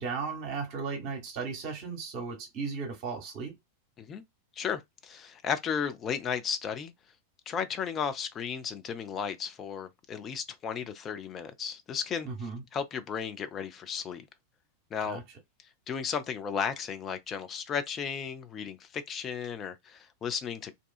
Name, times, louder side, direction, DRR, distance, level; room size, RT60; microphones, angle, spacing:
voice 1, 0.0-3.5 12.2-12.6 15.0-15.2, right 5 dB, 45° right, 1.0 m, -35 dB
voice 2, 4.6-6.9 7.5-12.3 12.7-14.2 14.9-15.2 15.9-20.7, left 7 dB, 25° left, 0.4 m, -34 dB
2.6 x 2.3 x 2.4 m
figure-of-eight pair, 90°, 0 cm